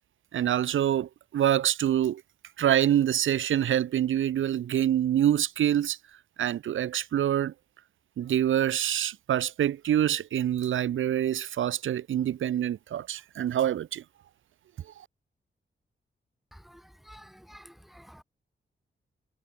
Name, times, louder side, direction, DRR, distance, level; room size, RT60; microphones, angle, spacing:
voice 1, 0.3-2.2 2.6-6.0 6.4-7.5 8.2-14.0, right 11 dB, 75° right, 0.5 m, -26 dB
voice 2, 17.1-18.2, equal, ahead, 1.6 m, -51 dB
wide cardioid pair, 140°, 20 cm